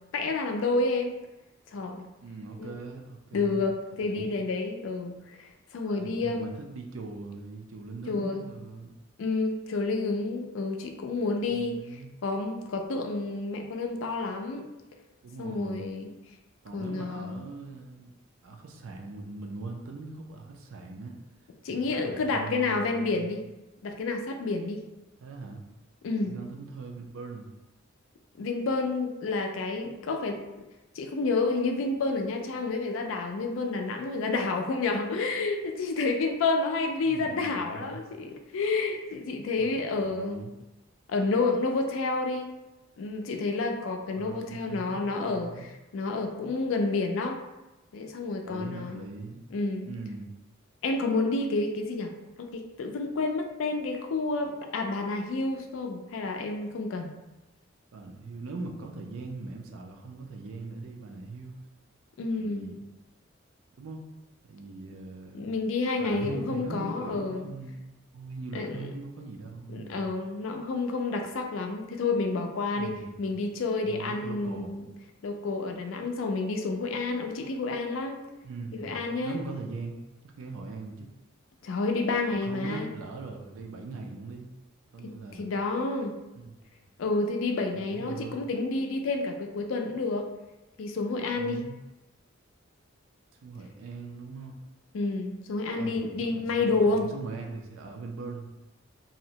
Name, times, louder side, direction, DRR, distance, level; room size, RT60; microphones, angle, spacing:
voice 1, 0.1-1.1 1.7-2.1 2.6-2.8 3.3-6.5 8.1-8.5 9.2-11.8 12.2-14.6 15.4-16.1 16.7-17.4 21.6-23.4 23.8-24.8 26.0-26.4 28.4-30.4 31.0-40.4 41.1-42.5 43.0-47.4 47.9-49.1 49.5-49.9 50.8-52.1 52.4-57.1 62.2-62.7 65.3-67.5 68.5-68.9 69.7-72.9 73.2-74.8 75.2-78.2 78.7-79.4 81.6-82.9 85.0-86.1 87.0-90.3 90.8-91.6 94.9-97.1, left 3 dB, 70° left, 4 dB, 0.4 m, -29 dB
voice 2, 2.2-3.7 4.0-4.3 5.9-8.9 11.5-12.1 15.2-15.8 16.6-18.1 18.4-21.2 21.7-23.3 25.2-25.6 26.2-27.5 37.0-38.0 39.6-40.5 44.2-45.7 48.4-49.4 49.8-50.3 57.9-61.6 62.4-62.8 63.8-64.0 64.5-65.5 66.0-70.1 72.7-73.4 73.8-74.9 78.4-80.0 80.4-81.1 82.3-84.5 84.9-85.5 86.4-86.5 87.7-88.4 91.3-91.8 93.4-94.6 95.7-98.5, right 3 dB, 80° right, 2 dB, 0.4 m, -41 dB
2.7 x 2.0 x 2.7 m, 1.0 s
head